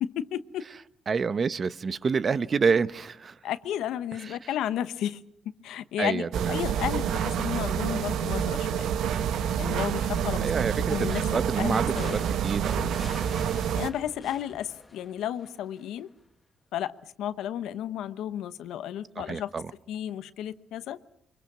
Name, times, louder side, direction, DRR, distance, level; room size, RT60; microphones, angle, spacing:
voice 1, 0.0-0.7 3.4-5.2 5.6-8.9 9.6-10.5 10.9-12.3 13.7-16.1 16.7-16.9 17.2-19.5 19.9-21.0, left 11 dB, 85° left, 0.9 m, -33 dB
voice 2, 1.1-3.4 6.0-6.6 10.4-12.9 19.2-19.7, right 5 dB, 40° right, 0.8 m, -28 dB
sound 1, 6.3-13.9, right 9 dB, 80° right, 1.0 m, -28 dB
sound 2, 12.0-15.6, left 2 dB, 20° left, 1.4 m, -42 dB
23.5 x 23.0 x 6.0 m
cardioid pair, 90°, 0 cm